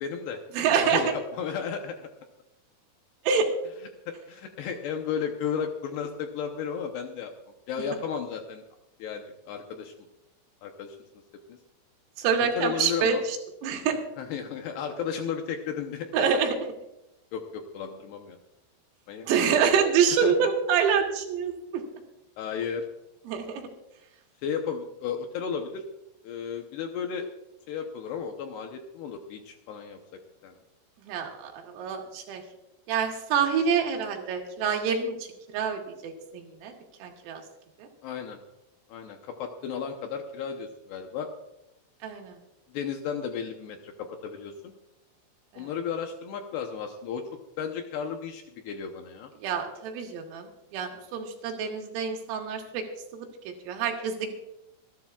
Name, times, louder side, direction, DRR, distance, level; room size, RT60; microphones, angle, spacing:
voice 1, 0.0-0.4 0.8-2.1 4.1-7.3 7.7-8.6 9.0-9.9 10.6-11.0 11.5-11.6 12.6-13.2 14.2-16.1 17.3-18.4 19.1-19.3 20.1-20.3 22.4-22.9 24.4-25.8 26.2-27.3 27.7-30.0 30.4-30.5 38.0-38.4 38.9-41.3 42.7-43.9 44.2-44.7 45.6-47.2 47.6-49.3, left 7 dB, 80° left, 4 dB, 2.4 m, -34 dB
voice 2, 0.5-1.1 3.3-3.5 12.2-13.4 13.6-14.0 16.1-16.6 19.2-21.8 23.3-23.7 31.1-32.4 32.9-35.2 35.5-36.7 37.0-37.4 37.8-37.9 42.0-42.4 45.5-45.7 49.4-50.5 50.7-52.8 53.1-53.3 53.7-54.3, right 6 dB, 85° right, 2 dB, 4.4 m, -26 dB
26.5 x 11.5 x 2.4 m, 0.90 s
omnidirectional pair, 5.9 m